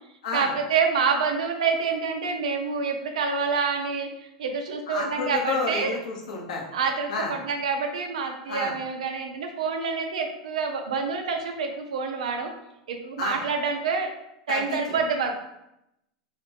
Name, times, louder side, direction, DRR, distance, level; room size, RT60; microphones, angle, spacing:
voice 1, 0.3-4.1 4.4-6.0 6.7-12.5 12.9-14.1 14.5-15.4, right 5 dB, 80° right, 4 dB, 0.7 m, -27 dB
voice 2, 4.9-6.7 7.1-7.3 8.5-8.7 13.2-13.4 14.5-15.0, left 3 dB, 80° left, -1 dB, 1.1 m, -30 dB
3.6 x 3.3 x 3.3 m, 0.84 s
hypercardioid pair, 105°, 4 cm